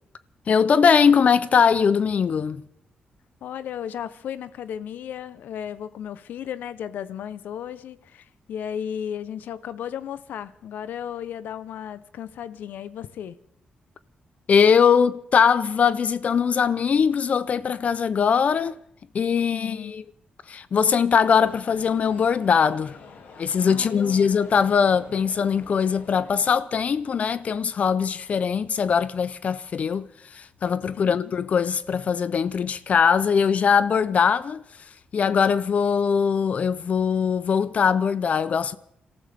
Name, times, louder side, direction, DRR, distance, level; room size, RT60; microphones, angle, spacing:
voice 1, 0.5-2.6 14.5-18.8 19.1-20.0 20.5-23.0 23.4-34.6 35.1-38.8, left 6 dB, 50° left, 0.5 m, -21 dB
voice 2, 3.4-13.4 19.5-20.0 23.7-24.2 30.9-31.3, left 9 dB, 90° left, 0.7 m, -35 dB
sound 1, 21.2-26.5, left 5 dB, 70° left, 2.5 m, -47 dB
29.0 x 14.0 x 3.5 m
cardioid pair, 115°, 3 cm